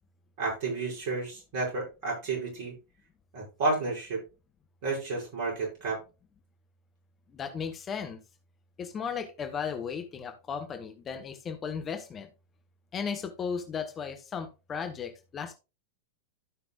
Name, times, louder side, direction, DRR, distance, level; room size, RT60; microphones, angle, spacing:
voice 1, 0.4-2.7 3.3-4.2 4.8-6.0, right 3 dB, 45° right, -2 dB, 6.2 m, -31 dB
voice 2, 7.3-8.2 8.8-12.3 12.9-15.5, left 6 dB, 25° left, 5 dB, 1.3 m, -35 dB
15.5 x 5.9 x 2.4 m, 0.29 s
figure-of-eight pair, 90°, 0 cm